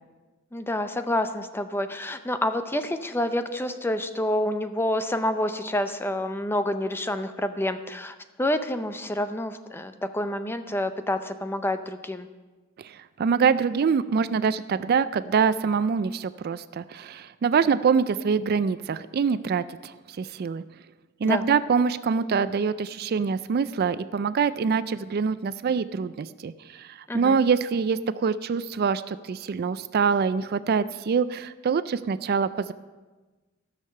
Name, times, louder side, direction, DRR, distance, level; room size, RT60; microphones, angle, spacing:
voice 1, 0.5-12.3 21.2-21.4 27.1-27.4, left 1 dB, 10° left, 9 dB, 0.5 m, -28 dB
voice 2, 12.8-20.6 21.2-32.7, right 6 dB, 50° right, 14 dB, 0.3 m, -25 dB
14.0 x 6.6 x 6.5 m, 1.3 s
head